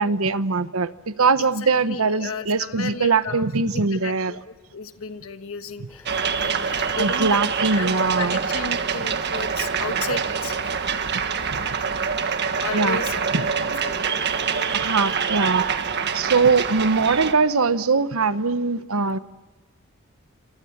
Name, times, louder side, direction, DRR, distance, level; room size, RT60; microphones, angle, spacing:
voice 1, 0.0-4.3 7.0-8.4 11.5-11.6 12.7-13.0 13.3-13.5 14.7-15.7 16.1-19.2, right 4 dB, 80° right, 13 dB, 1.1 m, -21 dB
voice 2, 1.4-7.3 7.6-7.9 8.2-10.7 12.6-14.7 16.2-16.3, left 4 dB, 70° left, 8 dB, 1.4 m, -34 dB
sound 1, 5.9-11.9, left 1 dB, 10° left, 3.5 m, -50 dB
sound 2, 6.1-17.3, right 6 dB, 55° right, 1.6 m, -25 dB
29.0 x 26.5 x 7.3 m, 1.2 s
head